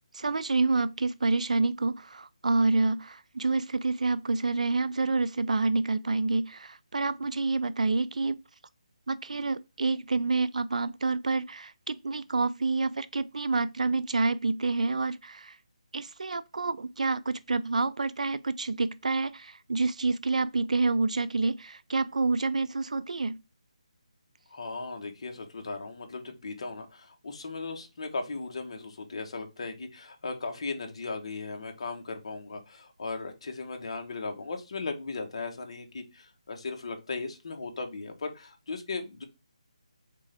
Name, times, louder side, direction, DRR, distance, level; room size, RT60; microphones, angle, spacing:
voice 1, 0.1-8.4 9.1-15.6 15.9-23.4, right 3 dB, 80° right, 0.4 m, -28 dB
voice 2, 24.5-39.2, left 3 dB, 50° left, 1.1 m, -37 dB
3.8 x 3.7 x 3.3 m
hypercardioid pair, 165°, 4 cm